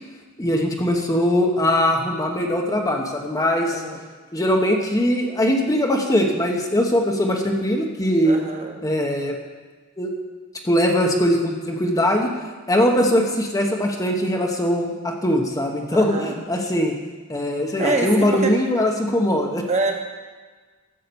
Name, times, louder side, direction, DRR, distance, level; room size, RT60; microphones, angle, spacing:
voice 1, 0.4-3.8 4.3-8.4 8.8-9.3 10.0-10.1 10.6-12.3 12.7-16.9 17.3-19.6, equal, 15° left, 1 dB, 1.1 m, -21 dB
voice 2, 8.2-8.8 15.9-16.4 17.8-18.5 19.7-19.9, right 2 dB, 30° right, 2 dB, 1.4 m, -25 dB
12.5 x 7.4 x 7.0 m, 1.4 s
head